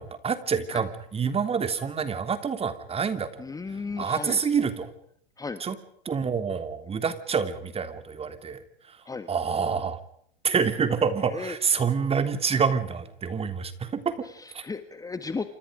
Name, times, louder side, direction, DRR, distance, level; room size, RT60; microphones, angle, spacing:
voice 1, 0.0-3.4 4.0-4.9 5.6-5.8 6.0-8.6 9.3-10.0 10.4-14.1 14.5-14.6, right 6 dB, 20° right, 10 dB, 3.3 m, -27 dB
voice 2, 3.4-4.4 5.4-5.6 9.0-9.3 11.2-11.6 14.2-15.5, left 4 dB, 10° left, 11 dB, 1.6 m, -35 dB
29.0 x 27.5 x 5.1 m, 0.66 s
hypercardioid pair, 115°, 31 cm